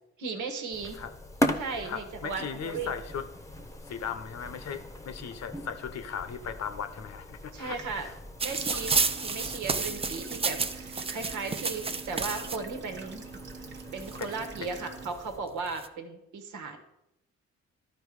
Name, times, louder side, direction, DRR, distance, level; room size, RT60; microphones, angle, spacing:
voice 1, 0.2-1.0 1.6-2.9 7.5-8.1 8.4-13.2 13.6-13.7 13.9-16.8, right 4 dB, 80° right, 5 dB, 1.6 m, -36 dB
sound 1, 0.7-15.4, left 1 dB, 10° left, 0.9 m, -39 dB
voice 2, 1.8-3.2 3.9-7.8 8.0-8.1 14.2-14.3 14.6-14.7, left 7 dB, 60° left, 10 dB, 0.9 m, -37 dB
sound 2, 8.4-12.6 13.5-13.6 13.8-14.8 15.5-15.9, right 4 dB, 20° right, 0.5 m, -31 dB
sound 3, 8.5-15.1, right 5 dB, 40° right, 1.1 m, -45 dB
12.5 x 4.6 x 4.8 m, 0.86 s
cardioid pair, 90°, 30 cm